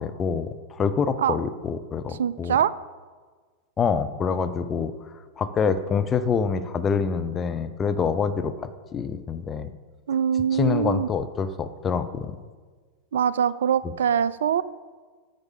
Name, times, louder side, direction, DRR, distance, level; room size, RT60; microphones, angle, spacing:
voice 1, 0.0-2.6 3.8-4.9 5.4-9.7 10.5-12.3, left 6 dB, 20° left, 10 dB, 0.6 m, -26 dB
voice 2, 2.2-2.7 10.1-11.1 13.1-14.6, right 8 dB, 60° right, 18 dB, 0.3 m, -23 dB
8.0 x 6.6 x 7.3 m, 1.5 s
figure-of-eight pair, 90°, 0 cm